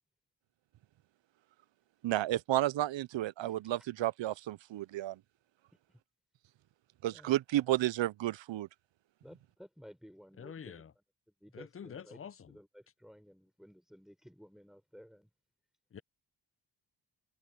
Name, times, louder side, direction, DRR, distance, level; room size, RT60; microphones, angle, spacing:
voice 1, 2.0-5.2 7.0-8.7, right 14 dB, 90° right, 0.5 m, -32 dB
voice 2, 9.2-11.0 11.4-12.2 12.5-15.3, equal, ahead, 5.2 m, -55 dB
voice 3, 10.4-10.9 11.5-12.6 15.9-16.0, left 7 dB, 30° left, 0.5 m, -47 dB
wide cardioid pair, 85°, 44 cm